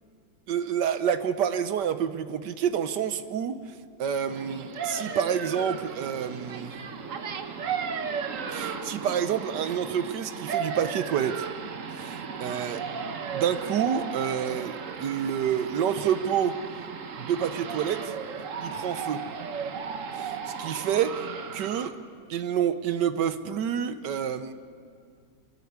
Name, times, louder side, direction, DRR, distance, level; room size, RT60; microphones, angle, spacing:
voice 1, 0.5-3.6 4.0-6.7 8.5-11.5 11.9-12.8 13.3-16.6 17.2-18.1 18.6-19.2 20.1-21.2 21.5-22.0 22.3-24.5, right 8 dB, 80° right, 11 dB, 1.5 m, -28 dB
sound 1, 4.3-21.9, right 6 dB, 55° right, 1.2 m, -35 dB
24.0 x 13.5 x 9.5 m, 2.2 s
omnidirectional pair, 1.8 m